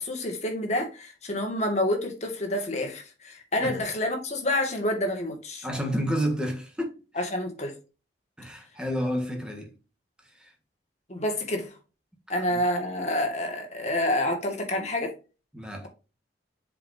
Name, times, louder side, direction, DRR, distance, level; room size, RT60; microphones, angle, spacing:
voice 1, 0.0-5.7 7.2-7.7 11.1-11.7 12.3-15.1, left 1 dB, 40° left, 1.9 m, -28 dB
voice 2, 5.6-7.3 8.4-9.7 10.4-10.5 12.5-12.6 15.5-15.9, equal, 5° right, 1.6 m, -30 dB
7.4 x 5.0 x 2.7 m
head